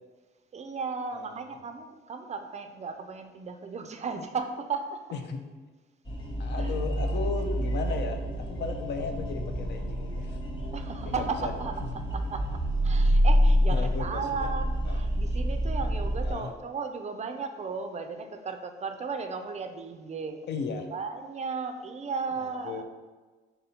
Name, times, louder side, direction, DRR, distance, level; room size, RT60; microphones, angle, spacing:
voice 1, 0.5-5.0 6.6-6.7 10.7-12.5 12.8-20.4 20.9-22.8, right 5 dB, 35° right, 7 dB, 0.4 m, -35 dB
voice 2, 1.1-1.6 5.1-5.4 6.4-10.4 11.0-11.5 13.7-14.5 14.9-15.0 16.2-16.5 20.5-20.9 22.4-22.8, left 5 dB, 60° left, 5 dB, 0.5 m, -35 dB
sound 1, 6.1-16.3, equal, 25° left, 0.8 m, -27 dB
4.0 x 3.9 x 2.8 m, 1.3 s
cardioid pair, 90°, 20 cm